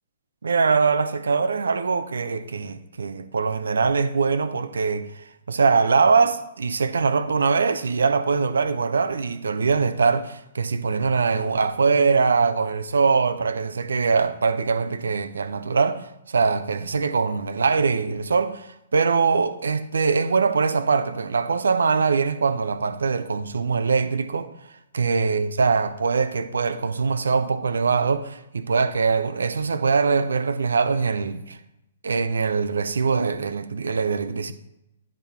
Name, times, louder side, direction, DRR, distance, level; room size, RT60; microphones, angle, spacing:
voice 1, 0.4-16.0 16.3-24.5 24.9-31.6 32.0-34.5, right 5 dB, 70° right, 0.6 m, -22 dB
10.0 x 4.1 x 4.3 m
figure-of-eight pair, 125°, 0 cm